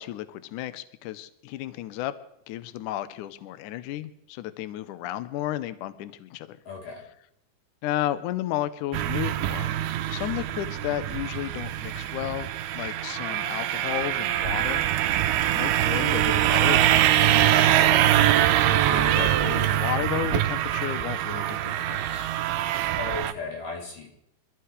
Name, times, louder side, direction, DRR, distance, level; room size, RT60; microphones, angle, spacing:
voice 1, 0.0-2.1 2.5-6.6 7.8-9.7 10.1-14.8 15.5-17.5 18.6-22.3, left 13 dB, 85° left, 12 dB, 1.8 m, -33 dB
voice 2, 6.7-7.1 17.7-18.2 23.0-24.1, left 4 dB, 60° left, -1 dB, 4.8 m, -36 dB
snowmobiles group pass by many nice, 8.9-23.3, right 12 dB, 80° right, 2.6 m, -23 dB
25.0 x 14.5 x 3.2 m, 0.77 s
omnidirectional pair, 4.5 m